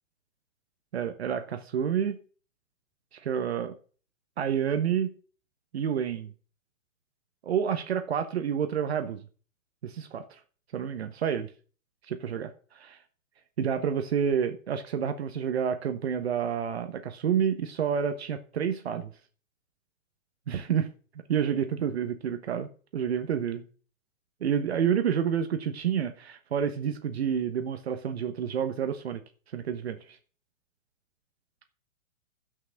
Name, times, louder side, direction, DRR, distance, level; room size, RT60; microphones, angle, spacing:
voice 1, 0.9-2.2 3.1-3.8 4.4-5.1 5.7-6.3 7.4-9.2 9.8-10.4 10.7-11.5 12.1-13.0 13.6-19.1 20.5-20.9 21.3-23.6 24.4-29.2 29.5-30.2, right 8 dB, 50° right, 1.1 m, -29 dB
13.0 x 6.1 x 6.4 m
hypercardioid pair, 175°, 41 cm